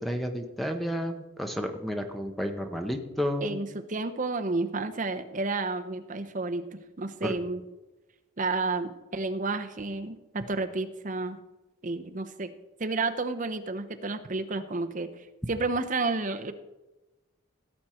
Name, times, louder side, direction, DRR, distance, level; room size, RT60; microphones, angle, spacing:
voice 1, 0.0-3.6 7.2-7.3, equal, ahead, 5 dB, 0.9 m, -31 dB
voice 2, 3.4-6.6 7.0-7.6 8.4-11.4 11.8-12.5 12.8-16.5, right 3 dB, 40° right, 7 dB, 0.8 m, -31 dB
17.0 x 7.6 x 4.4 m, 1.1 s
head